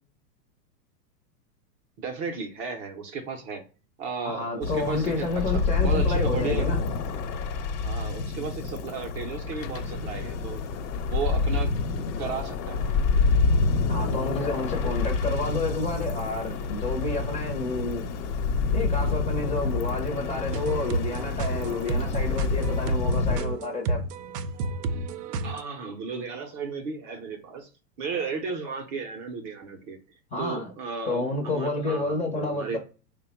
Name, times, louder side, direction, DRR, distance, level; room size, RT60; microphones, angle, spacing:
voice 1, 2.0-3.6 4.0-6.8 7.8-10.6 11.1-11.7 12.2-12.8 25.4-27.7 28.0-30.0 30.4-32.8, right 5 dB, 30° right, 0.6 m, -34 dB
voice 2, 4.2-6.8 13.9-18.1 18.7-24.0 30.3-30.7 31.1-32.8, left 3 dB, 15° left, 0.6 m, -30 dB
sound 1, 4.6-23.4, left 4 dB, 75° left, 1.0 m, -28 dB
sound 2, 9.6-22.9, left 8 dB, 55° left, 0.6 m, -40 dB
sound 3, 20.5-25.6, right 3 dB, 75° right, 0.6 m, -31 dB
3.3 x 2.2 x 4.3 m
hypercardioid pair, 130°, 49 cm